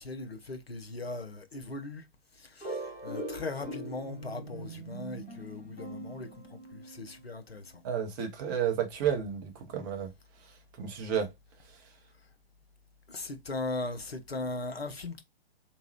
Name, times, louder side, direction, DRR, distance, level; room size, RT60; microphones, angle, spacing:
voice 1, 0.0-2.1 2.3-7.8 13.1-15.2, left 3 dB, 80° left, 0.8 m, -39 dB
sound 1, 2.6-7.2, right 1 dB, 20° left, 2.7 m, -41 dB
voice 2, 7.8-10.1 10.8-11.3, right 8 dB, 20° right, 0.6 m, -31 dB
3.5 x 3.0 x 2.8 m
figure-of-eight pair, 120°, 30 cm